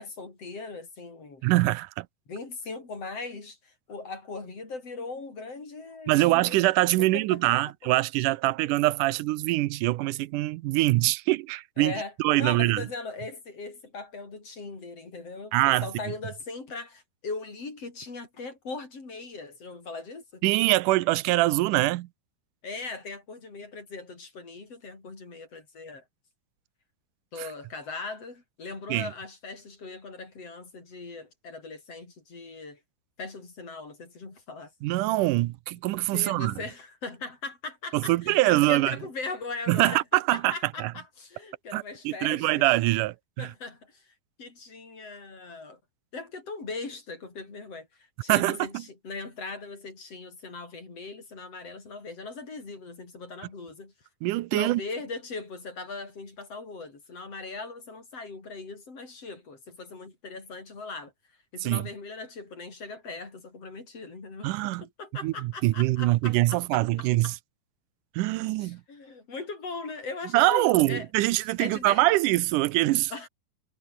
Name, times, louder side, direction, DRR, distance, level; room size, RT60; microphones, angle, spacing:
voice 1, 0.0-1.5 2.3-6.6 7.0-7.4 7.8-7.9 11.8-12.1 12.4-20.4 22.6-26.0 27.3-32.8 33.2-34.7 36.1-42.7 43.4-44.1 44.4-45.8 46.1-53.9 54.5-61.1 61.5-64.5 64.8-67.3 68.6-71.1 71.6-72.0 73.1-73.3, left 3 dB, 50° left, 6.7 m, -39 dB
voice 2, 1.4-2.1 6.1-11.9 12.2-12.9 15.5-15.9 20.4-22.1 27.4-27.5 28.9-29.1 34.8-36.5 37.9-39.0 39.7-40.5 40.8-40.9 41.7-43.5 48.3-48.8 54.2-54.8 61.6-61.9 64.4-64.8 65.2-67.3 68.2-68.8 70.3-73.1, right 18 dB, 80° right, 2.3 m, -24 dB
omnidirectional pair, 3.7 m